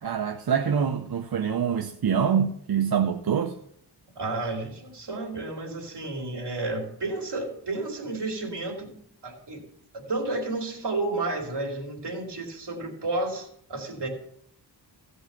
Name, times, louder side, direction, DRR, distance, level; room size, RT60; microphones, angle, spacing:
voice 1, 0.0-3.6, right 7 dB, 60° right, 0.7 m, -25 dB
voice 2, 4.2-9.0 9.2-9.6 9.9-14.1, right 2 dB, 75° right, 2.7 m, -31 dB
16.0 x 5.4 x 5.9 m
wide cardioid pair, 85°, 42 cm